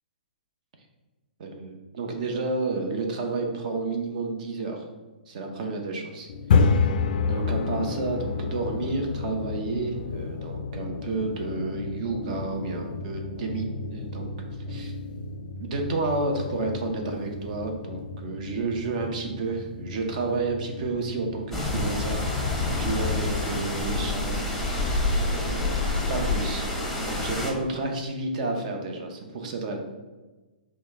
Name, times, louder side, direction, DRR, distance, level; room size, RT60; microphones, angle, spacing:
voice 1, 1.4-4.8 5.3-6.3 7.3-14.3 14.7-14.9 15.5-22.3 22.6-24.4 25.3-25.8 26.1-29.8, right 3 dB, 50° right, 3 dB, 0.8 m, -31 dB
sound 1, 6.3-26.2, left 4 dB, 60° left, 0.4 m, -31 dB
sound 2, 21.5-27.5, left 2 dB, 5° left, 0.7 m, -27 dB
4.9 x 2.2 x 3.6 m, 1.2 s
hypercardioid pair, 145°, 5 cm